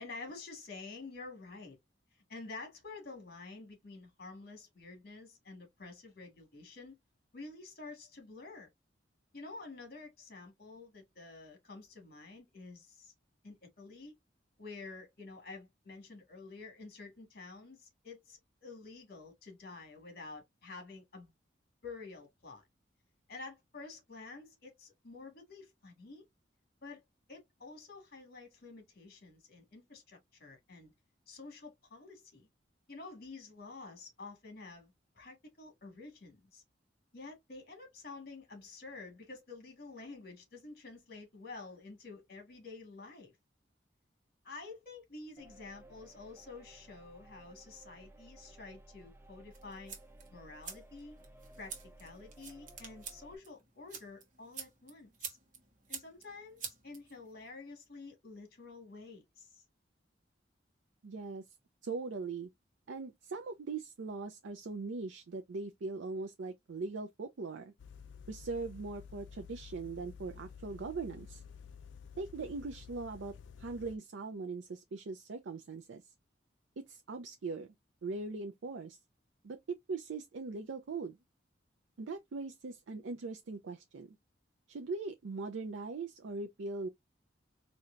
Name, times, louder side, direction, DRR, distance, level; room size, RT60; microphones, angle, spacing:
voice 1, 0.0-1.8 2.3-7.0 7.3-8.7 9.3-13.1 13.4-14.1 14.6-21.3 21.8-22.6 23.3-26.3 26.8-30.9 31.3-32.5 32.9-36.6 37.1-43.3 44.4-50.0 50.3-51.1 51.6-55.4 55.9-59.6, left 3 dB, 55° left, 1.6 m, -49 dB
sound 1, 45.4-53.4, right 1 dB, 10° right, 0.5 m, -57 dB
sound 2, 49.5-57.5, right 6 dB, 45° right, 1.2 m, -48 dB
voice 2, 61.0-61.4 61.8-62.5 62.9-67.7 68.3-71.4 72.2-73.3 73.6-76.0 76.8-77.7 78.0-79.0 79.4-79.6 79.9-81.2 82.0-84.2 84.7-86.9, right 3 dB, 90° right, 0.5 m, -40 dB
sound 3, 67.8-74.0, left 6 dB, 80° left, 0.4 m, -51 dB
4.3 x 2.7 x 2.4 m
head